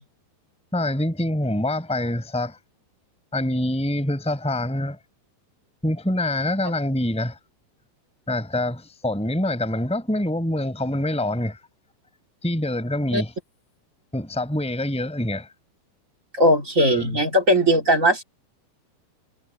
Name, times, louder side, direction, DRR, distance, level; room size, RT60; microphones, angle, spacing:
voice 1, 0.7-2.6 3.3-5.0 5.8-7.4 8.3-11.6 12.4-13.3 14.1-15.5 16.8-17.2, left 1 dB, ahead, 5.2 m, -25 dB
voice 2, 16.3-18.2, equal, 35° right, 1.2 m, -19 dB
omnidirectional pair, 5.2 m